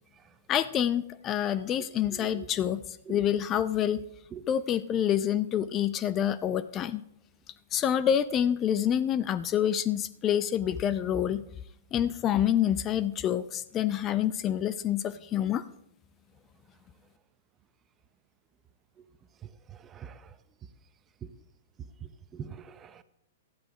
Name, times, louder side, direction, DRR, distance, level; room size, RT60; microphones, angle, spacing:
voice 1, 0.5-2.8 3.1-4.0 4.5-7.0 7.7-11.4 11.9-15.6, left 10 dB, 30° left, 0.5 m, -27 dB
voice 2, 2.1-2.5 3.1-3.2 4.3-4.5 19.7-20.2 22.0-23.0, right 7 dB, 25° right, 0.7 m, -43 dB
13.0 x 10.0 x 4.9 m
hypercardioid pair, 125°, 0 cm